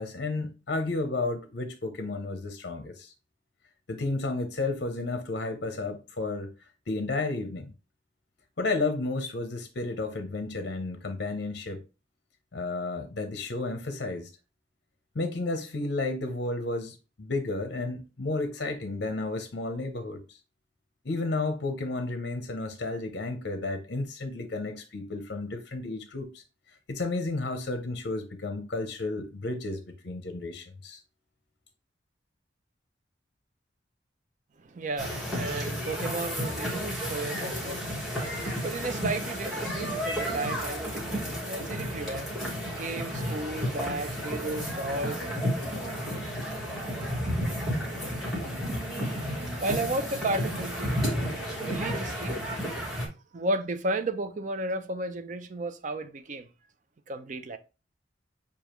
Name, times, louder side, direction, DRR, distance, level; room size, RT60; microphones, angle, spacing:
voice 1, 0.0-3.1 3.9-6.5 6.9-7.7 8.6-11.8 12.5-14.3 15.1-20.4 21.0-26.4 26.9-31.0, left 2 dB, 60° left, 0.7 m, -32 dB
voice 2, 34.6-45.9 49.6-51.0 51.6-52.4 53.3-56.5 57.1-57.6, right 2 dB, 45° right, 0.5 m, -34 dB
sound 1, 35.0-53.1, equal, ahead, 1.3 m, -32 dB
6.9 x 2.4 x 3.0 m
head